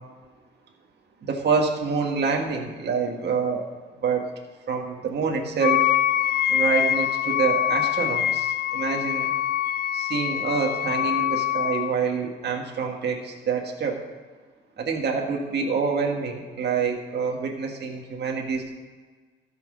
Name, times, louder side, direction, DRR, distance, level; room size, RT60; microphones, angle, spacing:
voice 1, 1.2-3.7 4.0-4.2 4.7-5.9 6.5-9.3 9.9-14.0 14.8-18.8, right 5 dB, 55° right, 1 dB, 1.7 m, -26 dB
Wind instrument woodwind instrument, 5.6-11.9, left 11 dB, 50° left, 0.4 m, -24 dB
13.5 x 6.1 x 6.2 m, 1.4 s
cardioid pair, 90°, 20 cm